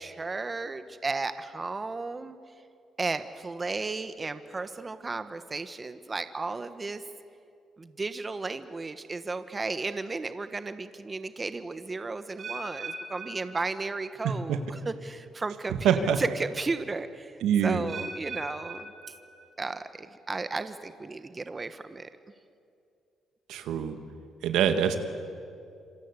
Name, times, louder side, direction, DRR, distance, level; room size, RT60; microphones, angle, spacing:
voice 1, 0.0-2.4 3.0-7.0 7.8-17.4 17.6-18.9 19.6-22.1, right 3 dB, 25° right, 11 dB, 1.2 m, -34 dB
sound 1, 12.4-14.4 14.7-15.1 15.8-15.9 17.9-19.8 20.1-20.6 21.2-21.3, right 3 dB, 50° right, 4.8 m, -41 dB
voice 2, 14.2-14.6 15.8-16.2 17.4-17.9 23.5-24.0 24.4-25.0, right 8 dB, 85° right, 8 dB, 1.9 m, -25 dB
27.0 x 24.5 x 8.3 m, 2.5 s
cardioid pair, 90°, 0 cm